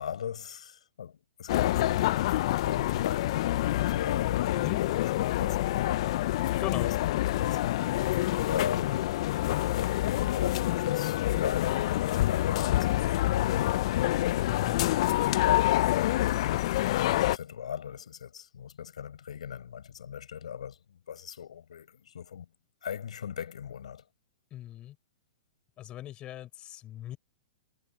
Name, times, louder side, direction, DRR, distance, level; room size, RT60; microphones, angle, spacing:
voice 1, 0.0-4.9 5.2-7.7 8.5-14.7 15.0-22.5 22.8-24.0, left 8 dB, 80° left, 6.5 m, -38 dB
sound 1, 1.5-17.4, left 15 dB, 60° left, 0.6 m, -27 dB
voice 2, 6.6-6.9 14.5-14.9 24.5-24.9 25.8-27.2, left 13 dB, 30° left, 7.0 m, -39 dB
hypercardioid pair, 125°, 4 cm